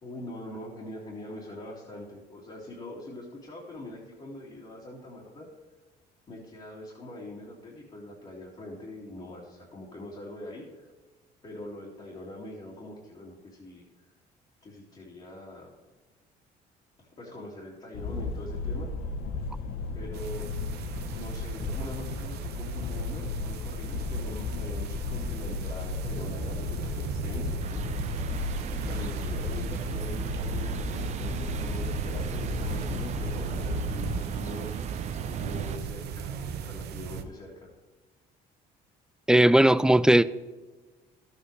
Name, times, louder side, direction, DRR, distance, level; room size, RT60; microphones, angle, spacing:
voice 1, 0.0-5.5 6.3-10.9 11.4-13.8 14.6-15.7 17.0-18.9 19.9-20.5 21.1-27.6 28.5-34.8 35.3-37.7, left 1 dB, 35° left, 2.6 m, -43 dB
sound 1, 17.9-34.2, left 3 dB, 70° left, 1.0 m, -34 dB
sound 2, 20.1-37.2, right 7 dB, 75° right, 0.9 m, -40 dB
sound 3, 27.6-35.8, right 8 dB, 45° right, 0.6 m, -35 dB
voice 2, 39.3-40.2, right 1 dB, 5° right, 0.3 m, -18 dB
12.5 x 8.1 x 3.3 m
cardioid pair, 110°, 17 cm